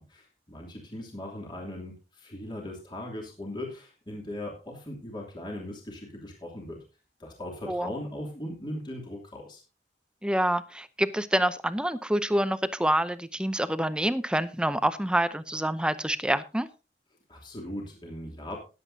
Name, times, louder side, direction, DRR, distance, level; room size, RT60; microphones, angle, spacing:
voice 1, 0.0-6.8 7.2-9.6 17.3-18.6, left 1 dB, 25° left, -1 dB, 2.9 m, -39 dB
voice 2, 10.2-16.7, right 1 dB, 5° right, 13 dB, 0.6 m, -27 dB
20.0 x 8.2 x 2.7 m, 0.30 s
head